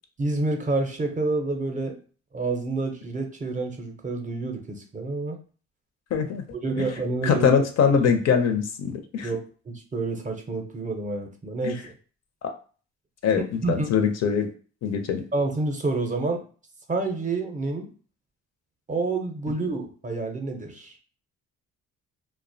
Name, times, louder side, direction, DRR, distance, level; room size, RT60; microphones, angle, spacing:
voice 1, 0.2-2.0 2.3-5.4 6.6-7.5 9.2-9.4 9.7-11.9 13.4-13.9 15.3-16.4 16.9-17.9 18.9-20.9, right 3 dB, 25° right, 3 dB, 0.5 m, -28 dB
voice 2, 6.1-6.4 7.2-9.3 11.6-11.7 13.2-14.5 14.8-15.2, left 6 dB, 60° left, 6 dB, 0.5 m, -22 dB
2.4 x 2.0 x 2.6 m, 0.39 s
cardioid pair, 90°, 30 cm